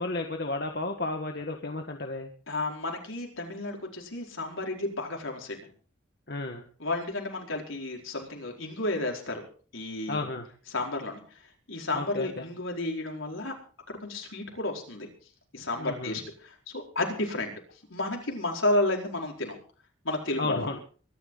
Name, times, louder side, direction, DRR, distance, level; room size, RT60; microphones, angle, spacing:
voice 1, 0.0-2.3 6.3-6.7 10.1-10.5 11.9-12.4 15.8-16.2 20.4-20.8, left 2 dB, 50° left, 3 dB, 1.5 m, -33 dB
voice 2, 2.5-5.6 6.8-9.4 9.7-10.2 10.7-11.2 11.7-13.6 13.9-15.1 15.5-17.5 17.9-19.5 20.0-20.7, left 2 dB, 75° left, 0 dB, 4.9 m, -32 dB
23.5 x 12.5 x 4.0 m, 0.41 s
head